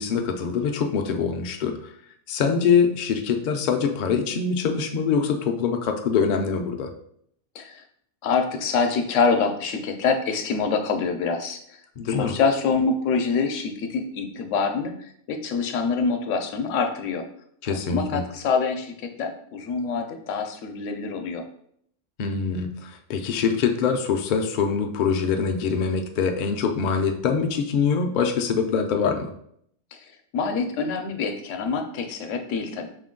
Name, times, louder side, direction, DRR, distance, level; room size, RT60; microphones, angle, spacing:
voice 1, 0.0-1.8 2.3-6.9 12.0-12.3 17.6-18.2 22.2-29.3, left 6 dB, 60° left, 4 dB, 0.5 m, -24 dB
voice 2, 8.2-11.8 12.1-17.3 17.7-21.5 29.9-32.9, left 5 dB, 80° left, 6 dB, 0.9 m, -26 dB
5.0 x 2.2 x 3.7 m, 0.68 s
omnidirectional pair, 1.3 m